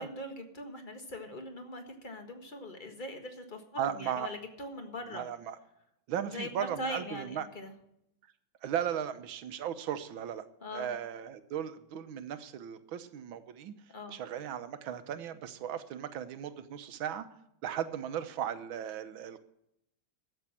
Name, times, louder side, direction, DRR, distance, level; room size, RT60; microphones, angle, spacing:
voice 1, 0.0-5.2 6.3-7.7 10.6-10.9 13.9-14.2, left 1 dB, 25° left, 5 dB, 1.5 m, -41 dB
voice 2, 3.8-4.3 5.1-5.6 6.1-7.5 8.6-10.4 10.7-13.7 14.1-17.3 17.6-19.4, right 9 dB, 80° right, 11 dB, 1.7 m, -36 dB
12.5 x 8.0 x 7.4 m, 0.79 s
omnidirectional pair, 2.2 m